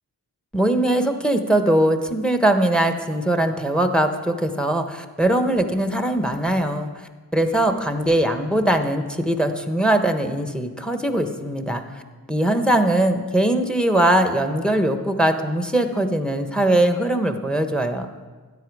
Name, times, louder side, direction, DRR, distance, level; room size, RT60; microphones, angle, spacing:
voice 1, 0.5-6.9 7.3-12.0 12.3-18.1, right 1 dB, ahead, 6 dB, 1.1 m, -21 dB
13.0 x 9.8 x 4.8 m, 1.4 s
cardioid pair, 60°, 37 cm